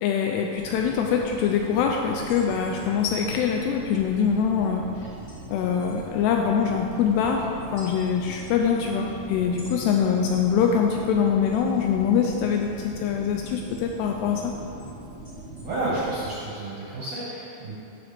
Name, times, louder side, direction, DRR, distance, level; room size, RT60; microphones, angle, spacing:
voice 1, 0.0-4.9 5.5-14.5, left 7 dB, 90° left, 1 dB, 2.3 m, -24 dB
sound 1, 0.6-16.3, right 1 dB, 45° left, 0.8 m, -41 dB
voice 2, 15.6-17.7, right 2 dB, 65° right, -8 dB, 1.7 m, -30 dB
14.0 x 7.1 x 3.4 m, 2.7 s
omnidirectional pair, 5.4 m